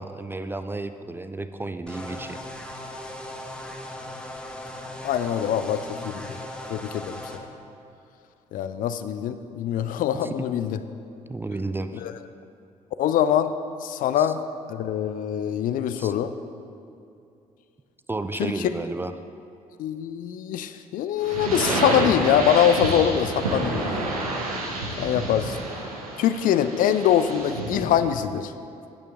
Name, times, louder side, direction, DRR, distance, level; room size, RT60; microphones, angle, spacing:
voice 1, 0.0-2.4 10.2-10.5 11.3-12.0 14.2-14.3 16.0-16.1 18.1-19.1, right 2 dB, 10° right, 10 dB, 0.4 m, -32 dB
sound 1, 1.9-7.4, left 1 dB, 5° left, 1.1 m, -38 dB
voice 2, 5.0-6.4 6.7-7.5 8.5-10.8 12.0-12.1 13.0-13.5 13.8-14.4 14.7-16.3 18.4-18.7 19.8-24.0 25.0-25.6 26.2-28.5, left 9 dB, 50° left, 11 dB, 0.5 m, -23 dB
sound 2, 21.2-27.9, right 2 dB, 80° right, 1.1 m, -29 dB
11.5 x 9.5 x 3.6 m, 2.6 s
figure-of-eight pair, 50°, 19 cm